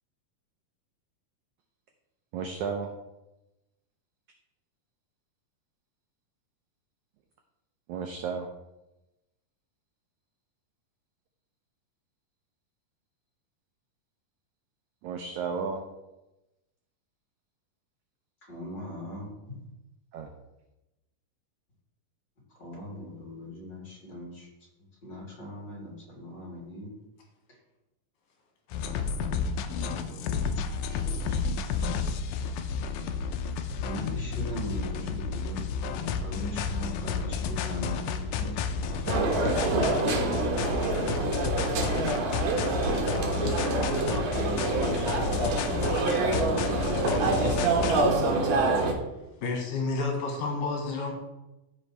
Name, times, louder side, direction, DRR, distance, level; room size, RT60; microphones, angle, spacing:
voice 1, 2.3-2.9 7.9-8.5 15.0-15.8 20.1-20.3, right 5 dB, 85° right, 4 dB, 1.7 m, -33 dB
voice 2, 18.5-19.3 22.6-24.5 25.0-26.9 29.5-31.4 33.8-35.6 35.9-39.0, equal, 30° left, -4 dB, 3.5 m, -40 dB
sound 1, 28.7-48.1, left 5 dB, 90° left, 1.8 m, -31 dB
sound 2, 39.1-48.9, right 3 dB, 60° right, 2.0 m, -26 dB
voice 3, 42.9-43.8 44.1-47.5 47.8-48.8 49.4-51.1, left 3 dB, 70° left, 0 dB, 3.1 m, -35 dB
14.0 x 5.2 x 3.3 m, 0.99 s
omnidirectional pair, 4.2 m